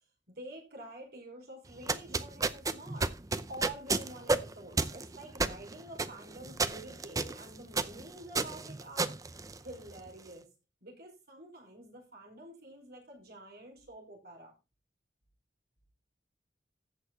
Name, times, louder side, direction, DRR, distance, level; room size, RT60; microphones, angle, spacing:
voice 1, 0.3-3.1 3.5-9.2 9.6-10.5 10.8-14.5, right 1 dB, 60° right, 1 dB, 5.3 m, -48 dB
sound 1, 1.7-10.1, right 3 dB, 20° right, 0.6 m, -33 dB
15.0 x 6.6 x 4.1 m, 0.29 s
head